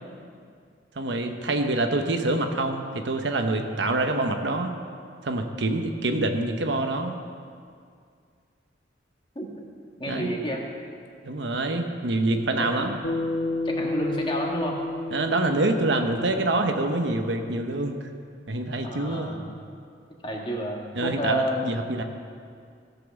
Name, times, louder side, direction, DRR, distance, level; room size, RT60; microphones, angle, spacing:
voice 1, 1.0-4.7 5.2-7.2 10.1-10.3 11.2-13.0 15.1-18.1 18.5-19.4 20.9-22.0, right 2 dB, 75° right, 5 dB, 0.9 m, -26 dB
voice 2, 10.0-10.6 12.3-13.1 13.6-14.8 18.8-19.5 20.2-21.8, equal, 25° left, -1 dB, 1.5 m, -30 dB
Bass guitar, 13.0-17.5, left 2 dB, 80° left, 1.0 m, -31 dB
15.5 x 5.9 x 7.1 m, 2.2 s
head